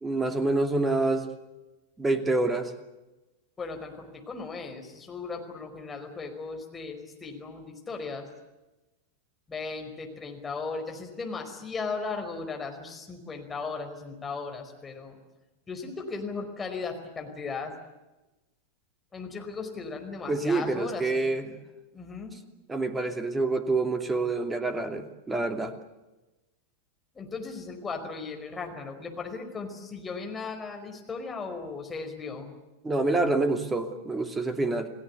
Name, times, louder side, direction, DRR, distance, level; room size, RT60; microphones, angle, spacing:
voice 1, 0.0-1.3 2.0-2.7 20.3-21.5 22.7-25.7 32.8-34.9, right 2 dB, 10° right, 8 dB, 2.7 m, -27 dB
voice 2, 3.6-8.3 9.5-15.2 15.7-17.7 19.1-21.6 21.9-22.3 27.1-32.5, left 4 dB, 15° left, 3 dB, 5.1 m, -37 dB
29.5 x 18.5 x 8.4 m, 1.1 s
figure-of-eight pair, 90°, 0 cm